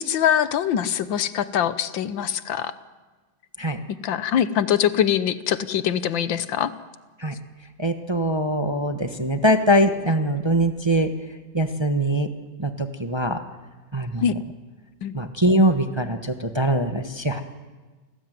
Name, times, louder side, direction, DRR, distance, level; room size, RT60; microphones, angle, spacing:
voice 1, 0.0-2.7 4.0-6.7 14.2-14.3 15.0-15.1, left 9 dB, 75° left, 14 dB, 1.7 m, -23 dB
voice 2, 7.8-11.1 11.5-12.3 12.6-13.4 13.9-14.2 15.1-17.4, right 1 dB, 15° right, 7 dB, 1.1 m, -22 dB
28.0 x 19.0 x 9.4 m, 1.3 s
omnidirectional pair, 2.1 m